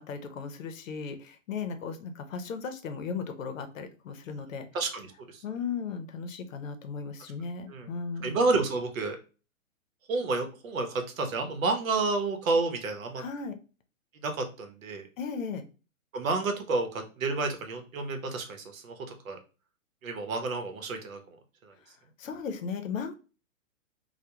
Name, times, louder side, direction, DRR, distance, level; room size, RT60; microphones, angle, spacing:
voice 1, 0.0-4.7 5.4-8.3 13.2-13.6 15.2-15.6 22.2-23.1, left 5 dB, 75° left, 8 dB, 0.7 m, -36 dB
voice 2, 4.7-5.4 7.7-7.9 8.2-9.2 10.1-13.2 14.2-15.0 16.1-19.4 20.0-21.4 21.6-21.7, right 3 dB, 80° right, 5 dB, 0.8 m, -30 dB
2.2 x 2.2 x 2.9 m, 0.34 s
hypercardioid pair, 150°, 40 cm